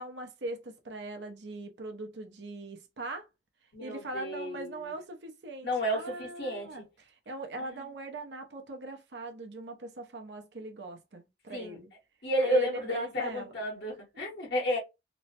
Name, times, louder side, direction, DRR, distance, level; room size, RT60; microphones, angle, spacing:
voice 1, 0.0-3.3 3.8-11.9 12.4-13.5, right 2 dB, 80° right, 0.7 m, -40 dB
voice 2, 3.7-4.9 5.6-6.8 7.6-7.9 11.5-11.8 12.2-14.8, equal, 70° left, 1.3 m, -32 dB
3.1 x 2.1 x 2.8 m
head